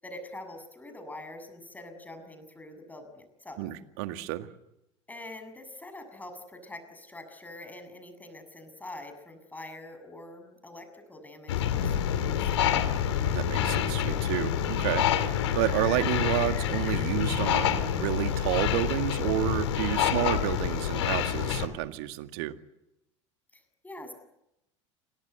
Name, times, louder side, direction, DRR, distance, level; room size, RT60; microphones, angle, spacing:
voice 1, 0.0-3.7 5.1-12.9 23.5-24.1, left 1 dB, 10° left, 8 dB, 7.2 m, -45 dB
voice 2, 3.6-4.5 13.3-22.5, right 16 dB, 55° right, 9 dB, 2.0 m, -30 dB
sound 1, 11.5-21.7, left 9 dB, 65° left, 2.9 m, -27 dB
29.5 x 24.0 x 8.1 m, 0.85 s
figure-of-eight pair, 75°, 16 cm